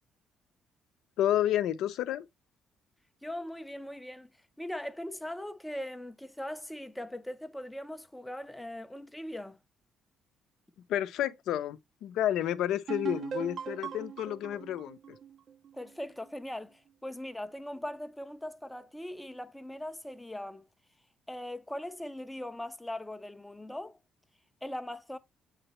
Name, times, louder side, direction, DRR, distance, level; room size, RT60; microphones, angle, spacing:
voice 1, 1.2-2.3 10.9-15.2, left 11 dB, 75° left, 0.6 m, -30 dB
voice 2, 3.2-4.3 4.6-9.6 15.7-20.6 21.3-24.0 24.6-25.2, left 1 dB, 5° left, 0.5 m, -40 dB
sound 1, 12.9-16.5, right 7 dB, 45° right, 0.5 m, -40 dB
7.9 x 4.1 x 2.9 m
cardioid pair, 135°, 0 cm